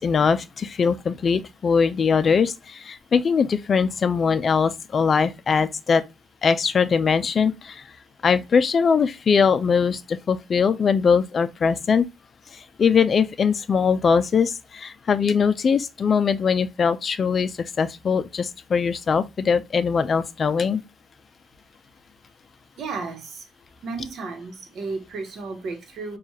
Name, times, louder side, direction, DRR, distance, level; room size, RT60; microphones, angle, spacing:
voice 1, 0.0-6.0 6.4-7.8 8.2-12.1 12.8-20.8, left 6 dB, 45° left, 0.4 m, -21 dB
voice 2, 22.8-23.4 23.8-26.2, right 4 dB, 65° right, 1.0 m, -33 dB
4.5 x 2.4 x 2.7 m
cardioid pair, 90°, 0 cm